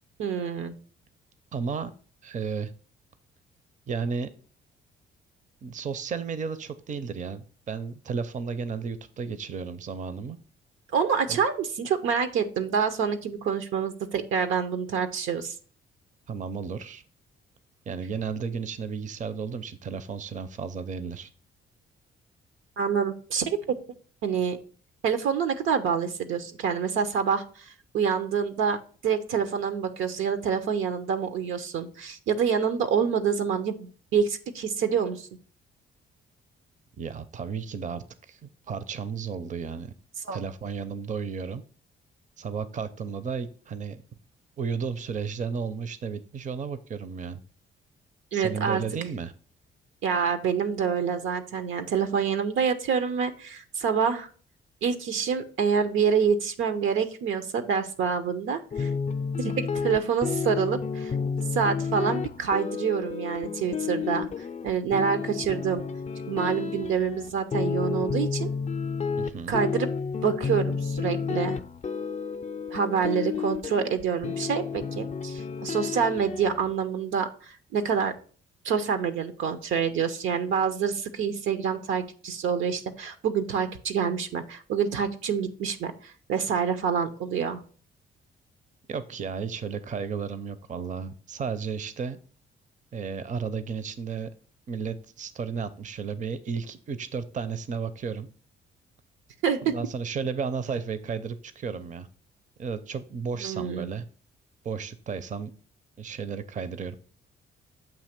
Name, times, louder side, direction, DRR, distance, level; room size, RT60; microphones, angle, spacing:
voice 1, 0.2-0.8 10.9-15.5 22.8-23.8 24.2-24.6 25.0-27.4 27.9-35.3 40.3-40.4 48.3-48.8 50.0-54.3 54.8-58.9 59.4-61.1 61.5-64.3 64.6-65.8 66.3-68.5 69.5-69.9 70.2-71.6 72.7-78.1 78.6-87.6 99.4-99.7 103.4-103.9, right 7 dB, 80° right, 9 dB, 0.8 m, -27 dB
voice 2, 1.5-1.9 2.2-2.7 3.9-4.3 5.6-10.4 11.3-11.4 16.3-17.0 17.9-21.3 37.0-39.9 40.3-41.6 42.4-44.0 44.6-47.4 48.3-49.3 69.2-69.6 88.9-92.2 92.9-94.3 94.7-98.3 99.6-102.1 102.6-104.0 104.6-105.5 106.0-106.9, right 6 dB, 40° right, 13 dB, 0.6 m, -33 dB
sound 1, 58.7-76.7, left 5 dB, 35° left, 0.5 m, -31 dB
7.4 x 2.9 x 5.8 m, 0.42 s
cardioid pair, 90°, 20 cm